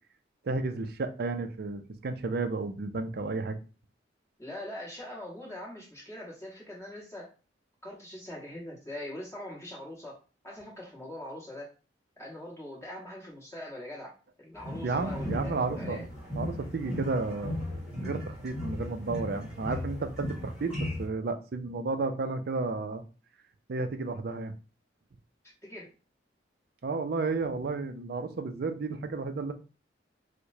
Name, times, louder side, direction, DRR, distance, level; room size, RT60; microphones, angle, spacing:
voice 1, 0.4-3.6 14.8-16.0 16.3-23.0 23.7-24.5 26.8-29.5, right 3 dB, 55° right, 8 dB, 0.4 m, -32 dB
voice 2, 4.4-7.3 7.8-10.2 10.4-11.7 12.2-14.1 14.4-16.1 25.6-25.9, left 1 dB, 15° left, -4 dB, 1.3 m, -42 dB
sound 1, 14.6-21.1, left 1 dB, 5° right, 1.2 m, -36 dB
4.6 x 2.1 x 2.6 m, 0.33 s
head